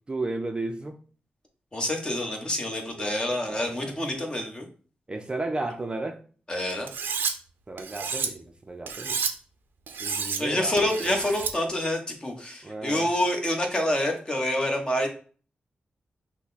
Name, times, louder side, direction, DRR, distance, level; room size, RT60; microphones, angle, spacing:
voice 1, 0.1-0.9 3.0-4.0 5.1-6.2 7.7-9.2 10.0-10.9 12.6-13.1, right 2 dB, 30° right, 0.5 m, -34 dB
voice 2, 1.7-4.7 6.5-6.9 10.4-15.1, left 1 dB, 25° left, 1.1 m, -27 dB
Cutlery silverware, 6.9-7.3 7.8-8.3 8.9-9.3 9.9-10.4 10.8-11.5, right 6 dB, 85° right, 0.6 m, -30 dB
5.9 x 2.2 x 4.1 m
wide cardioid pair, 90°, 3 cm